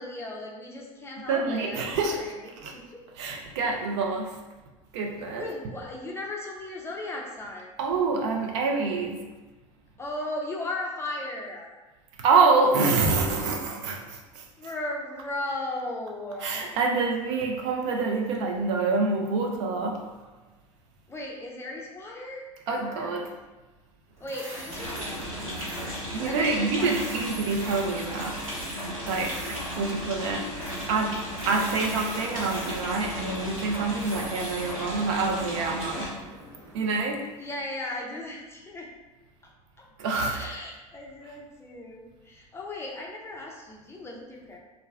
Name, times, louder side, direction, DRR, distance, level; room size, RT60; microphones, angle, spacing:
voice 1, 0.0-2.8 5.4-7.7 10.0-11.7 14.6-16.7 21.1-23.2 24.2-25.8 26.2-27.2 37.4-38.9 39.4-39.9 40.3-44.6, left 2 dB, 15° left, -1 dB, 0.4 m, -37 dB
voice 2, 1.3-2.2 2.6-2.7 3.2-4.4 4.9-5.4 7.8-9.2 12.2-14.4 16.4-20.0 22.7-23.3 26.1-28.4 29.1-29.3 29.8-30.5 30.9-36.1 36.7-37.2 40.0-40.4, right 4 dB, 55° right, 1 dB, 0.5 m, -26 dB
sound 1, 24.2-37.0, right 1 dB, 15° right, 0.7 m, -44 dB
sound 2, 24.7-36.1, equal, 80° right, 1.2 m, -35 dB
2.4 x 2.1 x 3.3 m, 1.2 s
figure-of-eight pair, 75°, 18 cm